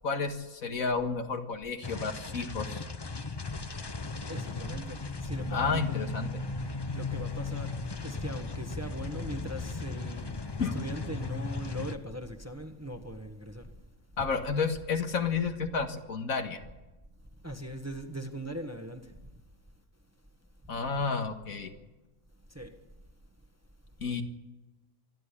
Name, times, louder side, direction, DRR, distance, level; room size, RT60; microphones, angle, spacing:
voice 1, 0.0-2.8 5.5-6.3 10.6-10.7 14.2-16.6 20.7-21.7 24.0-24.2, left 5 dB, 75° left, 2.2 m, -31 dB
sound 1, 1.8-11.9, left 3 dB, 25° left, 0.6 m, -37 dB
voice 2, 4.3-6.0 6.9-7.7 8.0-13.7 17.4-19.1 22.5-22.7, right 1 dB, 10° right, 1.4 m, -40 dB
25.5 x 11.0 x 9.9 m
omnidirectional pair, 1.5 m